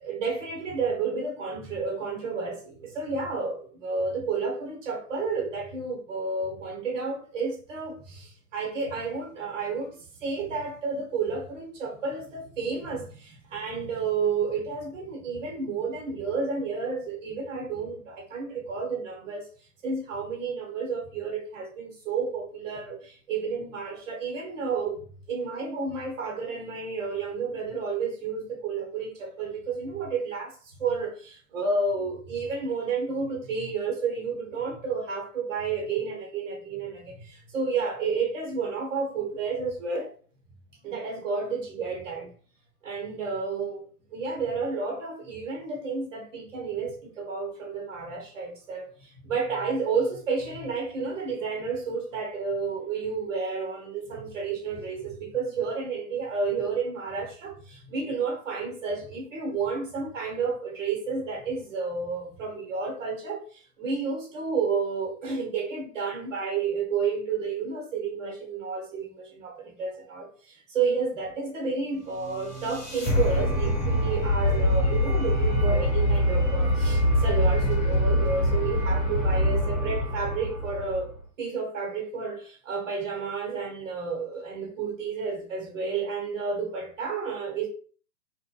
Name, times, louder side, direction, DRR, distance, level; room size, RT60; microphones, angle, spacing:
voice 1, 0.0-19.5 19.8-40.1 40.8-42.3 42.8-43.8 44.1-81.1 81.4-87.7, right 4 dB, 50° right, 0.9 m, -31 dB
sound 1, 72.0-81.2, equal, 15° left, 1.1 m, -24 dB
2.7 x 2.1 x 2.2 m
hypercardioid pair, 130°, 49 cm